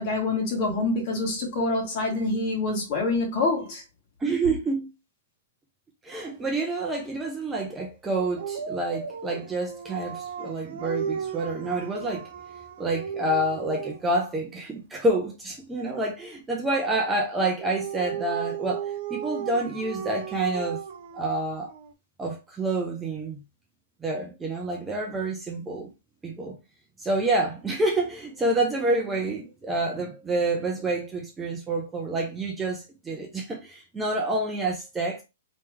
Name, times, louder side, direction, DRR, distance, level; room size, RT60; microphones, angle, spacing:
voice 1, 0.0-3.8, left 2 dB, 40° left, 1.7 m, -26 dB
voice 2, 4.2-4.9 6.0-12.3 12.8-20.8 21.1-21.7 22.2-23.4 24.0-25.9 26.2-26.6 27.0-35.2, right 2 dB, 10° right, 0.6 m, -28 dB
Dog, 8.3-14.2 17.3-21.9, right 8 dB, 55° right, 0.6 m, -35 dB
3.1 x 3.0 x 3.4 m
hypercardioid pair, 150°, 0 cm